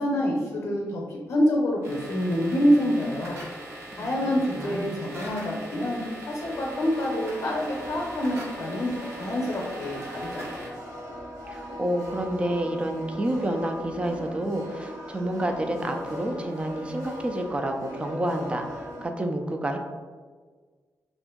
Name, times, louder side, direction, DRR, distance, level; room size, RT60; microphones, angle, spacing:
voice 1, 0.0-3.4 4.0-10.7, equal, 55° left, -2 dB, 0.6 m, -26 dB
sound 1, 1.8-10.7, right 1 dB, 45° right, 0.8 m, -41 dB
voice 2, 4.6-5.0 11.5-19.8, right 1 dB, 20° right, 4 dB, 0.3 m, -29 dB
sound 2, 6.4-19.1, equal, 70° right, 0.9 m, -39 dB
2.8 x 2.5 x 3.6 m, 1.5 s
wide cardioid pair, 150°, 6 cm